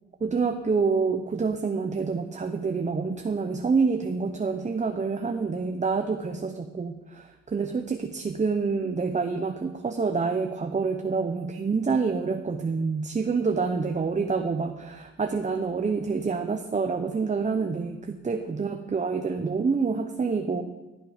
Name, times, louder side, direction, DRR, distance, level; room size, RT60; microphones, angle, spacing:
voice 1, 0.2-20.6, right 4 dB, 25° right, 6 dB, 0.9 m, -27 dB
15.5 x 9.0 x 5.1 m, 1.1 s
cardioid pair, 90°, 30 cm